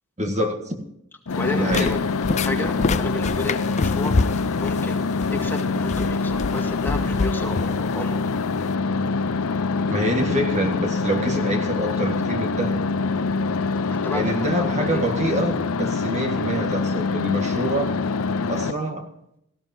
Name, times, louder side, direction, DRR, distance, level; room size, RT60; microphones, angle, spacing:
voice 1, 0.2-0.8 1.6-2.0 9.9-12.8 14.1-18.0 18.5-19.1, right 1 dB, 35° right, 3 dB, 1.8 m, -26 dB
sound 1, 1.3-18.7, left 4 dB, 90° left, 0.6 m, -25 dB
sound 2, 1.3-8.7, left 3 dB, 35° left, 0.5 m, -28 dB
voice 2, 1.3-2.0 2.4-4.1 4.6-5.0 5.3-8.2 13.9-15.0, left 2 dB, 10° left, 1 dB, 2.0 m, -31 dB
18.0 x 16.0 x 2.8 m, 0.77 s
head